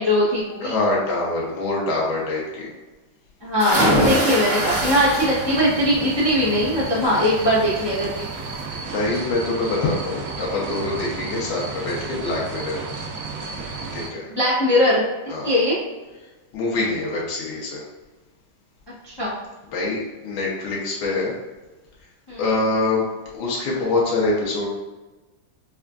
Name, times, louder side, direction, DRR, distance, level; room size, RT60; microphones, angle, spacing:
voice 1, 0.0-0.7 3.4-8.3 14.3-15.0 15.4-15.8 19.0-19.3 22.3-22.4, left 1 dB, 25° left, -9 dB, 0.5 m, -20 dB
voice 2, 0.6-2.7 8.9-12.8 13.9-14.3 15.3-15.5 16.5-17.8 19.7-21.3 22.4-23.1 23.3-24.7, left 2 dB, 90° left, -4 dB, 1.6 m, -24 dB
sound 1, 3.6-5.7 6.1-6.5 7.9-8.0 8.4-8.5, equal, 25° right, 1.2 m, -22 dB
sound 2, 4.5-14.1, right 4 dB, 80° right, 0.7 m, -32 dB
5.4 x 2.3 x 2.4 m, 1.2 s
omnidirectional pair, 2.1 m